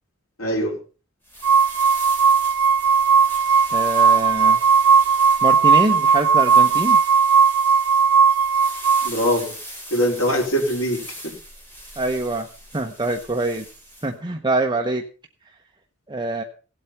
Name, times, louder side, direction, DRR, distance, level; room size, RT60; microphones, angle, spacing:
voice 1, 0.4-0.8 9.0-9.5 9.9-11.3, equal, 75° left, 1 dB, 4.7 m, -22 dB
sound 1, 1.2-14.1, equal, 10° left, 5.8 m, -39 dB
sound 2, 1.4-9.1, right 6 dB, 80° right, 0.6 m, -17 dB
voice 2, 3.7-4.6 5.4-7.0 12.0-12.5 12.7-13.6 14.0-15.0 16.1-16.4, right 2 dB, 20° right, 4 dB, 1.0 m, -24 dB
17.0 x 8.2 x 5.7 m, 0.37 s
head